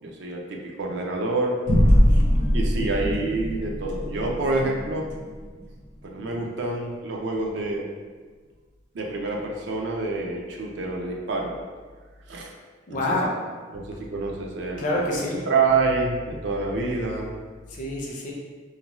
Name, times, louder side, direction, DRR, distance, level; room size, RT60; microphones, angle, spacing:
voice 1, 0.0-1.5 2.1-2.2 2.5-5.0 6.0-7.9 8.9-11.5 12.3-12.5 12.9-13.0 13.7-15.1 15.5-17.3, right 3 dB, 60° right, 0 dB, 0.4 m, -27 dB
sound 1, 1.7-6.5, equal, 90° right, 1.2 m, -23 dB
voice 2, 12.9-13.3 14.8-15.5 17.7-18.3, left 1 dB, 40° left, -2 dB, 0.4 m, -27 dB
2.6 x 2.2 x 2.9 m, 1.5 s
head